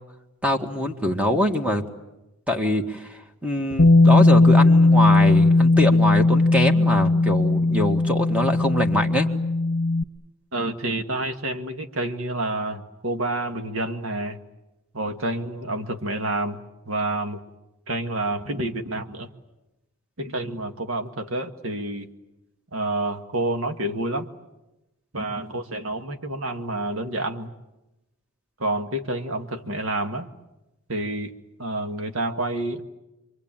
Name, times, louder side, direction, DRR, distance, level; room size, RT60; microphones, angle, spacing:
voice 1, 0.4-1.8 2.5-9.3, equal, 5° right, 4 dB, 1.8 m, -24 dB
Bass guitar, 3.8-10.0, left 2 dB, 60° left, 0.9 m, -17 dB
voice 2, 10.5-14.4 14.9-16.6 16.9-17.4 17.9-19.3 20.2-22.1 22.7-24.3 25.1-27.5 28.6-30.3 30.9-31.3 31.6-32.8, right 2 dB, 70° right, 6 dB, 1.9 m, -28 dB
28.5 x 23.5 x 8.9 m, 0.98 s
head